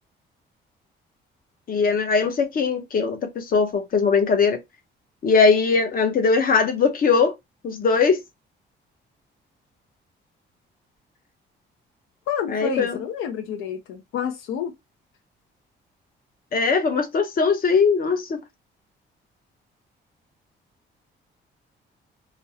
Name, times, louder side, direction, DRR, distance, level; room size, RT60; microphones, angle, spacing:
voice 1, 1.7-4.6 5.2-7.3 7.6-8.2 12.5-12.9 16.5-18.4, left 5 dB, 45° left, 0.6 m, -20 dB
voice 2, 12.3-14.7, left 7 dB, 85° left, 0.5 m, -29 dB
2.4 x 2.0 x 2.6 m
cardioid pair, 90°, 20 cm